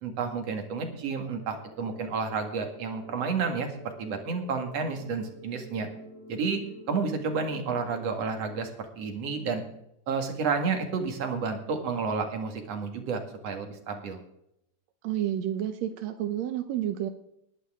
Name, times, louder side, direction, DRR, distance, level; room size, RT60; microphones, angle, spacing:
voice 1, 0.0-3.7 4.0-5.9 6.3-6.6 6.9-8.7 9.0-9.6 10.1-14.2, right 5 dB, 50° right, 5 dB, 2.9 m, -30 dB
sound 1, 0.7-8.7, left 1 dB, 45° left, 5.1 m, -49 dB
voice 2, 15.0-17.1, right 11 dB, 70° right, 8 dB, 1.7 m, -30 dB
19.5 x 11.5 x 3.7 m, 0.76 s
omnidirectional pair, 3.9 m